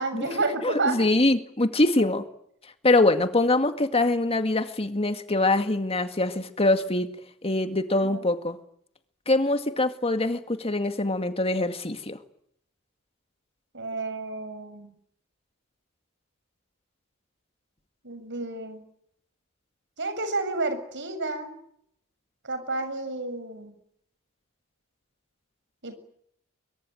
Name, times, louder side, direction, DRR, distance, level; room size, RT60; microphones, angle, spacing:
voice 1, 0.0-1.1 8.0-8.3 13.7-15.0 18.0-18.8 20.0-21.5 22.4-23.8 25.8-26.0, right 3 dB, 60° right, 9 dB, 7.2 m, -30 dB
voice 2, 0.6-2.2 2.8-7.1 7.4-8.6 9.3-12.2, left 2 dB, 30° left, 8 dB, 2.1 m, -24 dB
25.0 x 24.0 x 9.2 m, 0.70 s
head